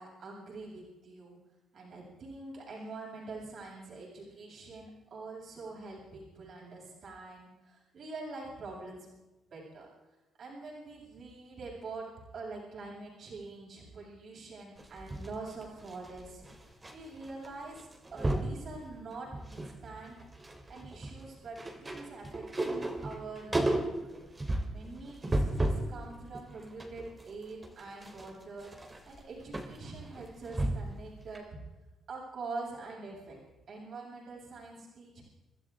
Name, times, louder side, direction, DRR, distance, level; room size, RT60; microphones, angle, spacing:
voice 1, 0.0-1.4 1.7-9.1 9.5-9.9 10.4-20.2 20.7-24.2 24.7-28.7 29.0-31.5 32.1-33.4 33.7-35.2, right 3 dB, 55° right, -4 dB, 7.8 m, -45 dB
sound 1, 14.8-16.9 17.2-17.5 17.7-18.6 19.1-19.8 20.1-25.9 26.3-31.0 31.3-31.4, right 1 dB, 20° right, 3.2 m, -34 dB
29.5 x 12.5 x 3.8 m, 1.1 s
cardioid pair, 90°, 0 cm